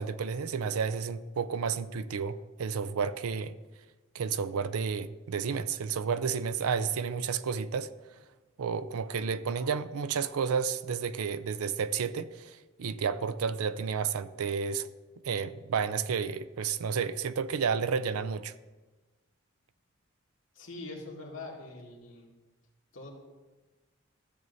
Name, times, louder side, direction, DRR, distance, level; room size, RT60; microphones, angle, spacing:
voice 1, 0.0-3.5 4.1-7.9 8.6-14.9 15.2-18.5, right 6 dB, 90° right, 0.4 m, -31 dB
voice 2, 20.6-22.3 22.9-23.1, left 2 dB, 65° left, 1.9 m, -43 dB
14.0 x 7.6 x 2.7 m
head